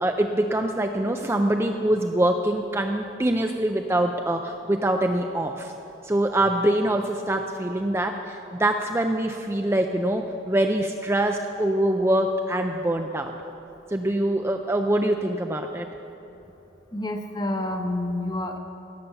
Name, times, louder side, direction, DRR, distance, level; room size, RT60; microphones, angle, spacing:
voice 1, 0.0-5.7 6.0-13.3 13.9-15.9, right 1 dB, 15° right, 4 dB, 0.4 m, -24 dB
voice 2, 16.9-18.6, left 1 dB, 20° left, 5 dB, 0.8 m, -28 dB
16.5 x 6.9 x 6.9 m, 3.0 s
head